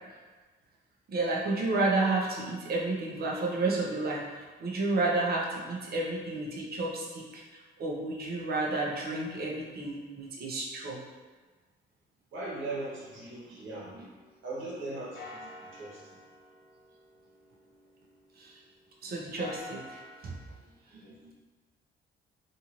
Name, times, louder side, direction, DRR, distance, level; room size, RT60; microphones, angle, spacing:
voice 1, 1.1-11.0 18.4-18.5 19.0-20.3 20.9-21.0, right 2 dB, 50° right, -2 dB, 0.7 m, -31 dB
voice 2, 12.3-14.0 14.4-16.2 20.9-21.1, right 2 dB, 90° right, -7 dB, 1.1 m, -39 dB
sound 1, 13.0-14.8 15.1-18.7 19.2-20.4, left 2 dB, 65° left, 0.7 m, -49 dB
2.6 x 2.5 x 2.9 m, 1.4 s
cardioid pair, 90°, 20 cm